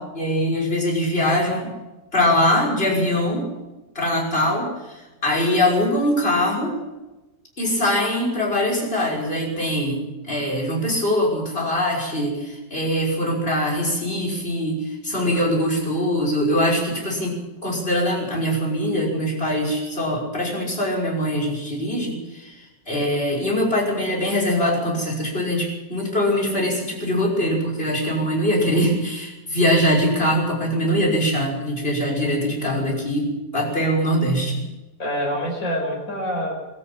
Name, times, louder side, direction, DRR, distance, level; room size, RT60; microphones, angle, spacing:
voice 1, 0.0-1.7 2.1-3.4 3.9-6.7 7.6-34.6, equal, 35° left, -2 dB, 6.4 m, -22 dB
voice 2, 15.2-15.5 35.0-36.5, equal, 55° left, -1 dB, 5.8 m, -26 dB
23.5 x 13.0 x 8.9 m, 1.1 s
omnidirectional pair, 1.7 m